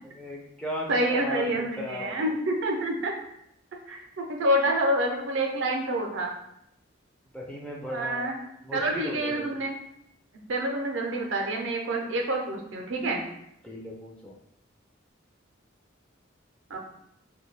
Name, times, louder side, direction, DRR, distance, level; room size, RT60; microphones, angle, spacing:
voice 1, 0.0-2.3 7.3-8.3 8.6-9.6 13.6-14.3, left 1 dB, 5° left, -3 dB, 0.4 m, -37 dB
voice 2, 0.9-3.1 3.9-6.3 7.9-8.4 8.7-9.7 10.5-13.2 16.7-16.8, right 1 dB, 70° right, 1 dB, 0.5 m, -27 dB
2.2 x 2.2 x 3.2 m, 0.78 s
head